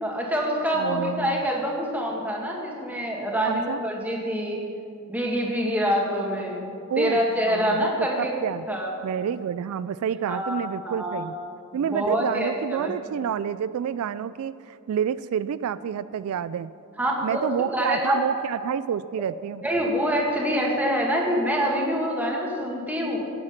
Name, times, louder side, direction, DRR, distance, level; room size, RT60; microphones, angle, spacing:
voice 1, 0.0-4.6 5.1-6.7 7.0-8.3 8.7-8.9 10.3-10.6 10.8-11.2 11.7-12.9 17.0-18.2 19.6-23.2, equal, 5° right, -2 dB, 1.9 m, -26 dB
voice 2, 0.7-1.4 3.4-3.8 6.9-7.2 7.5-8.7 9.0-11.4 11.7-16.7 17.2-19.6, right 8 dB, 75° right, 16 dB, 0.3 m, -29 dB
18.0 x 7.8 x 5.8 m, 2.5 s
head